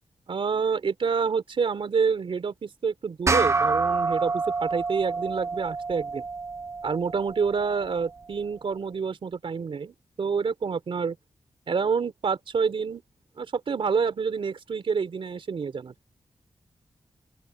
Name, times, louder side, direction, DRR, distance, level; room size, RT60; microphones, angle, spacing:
voice 1, 0.3-6.2 6.8-11.2 11.7-13.0 13.4-15.9, right 5 dB, 60° right, 3.4 m, -28 dB
sound 1, 3.3-8.0, right 4 dB, 30° right, 0.7 m, -28 dB
open air
wide cardioid pair, 150°, 10 cm